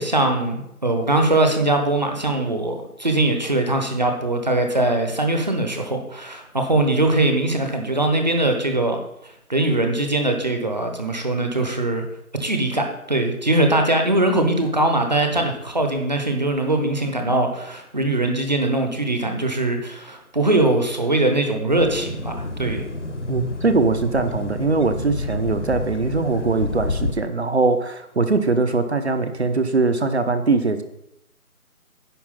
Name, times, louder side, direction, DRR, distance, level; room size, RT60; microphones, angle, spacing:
voice 1, 0.0-9.0 9.2-12.0 12.4-22.8, right 2 dB, 30° right, 4 dB, 1.0 m, -21 dB
sound 1, 21.7-27.1, left 3 dB, 50° left, 1.0 m, -29 dB
voice 2, 23.3-30.8, right 3 dB, 45° right, 9 dB, 0.9 m, -21 dB
10.0 x 4.7 x 7.3 m, 0.80 s
figure-of-eight pair, 165°, 45 cm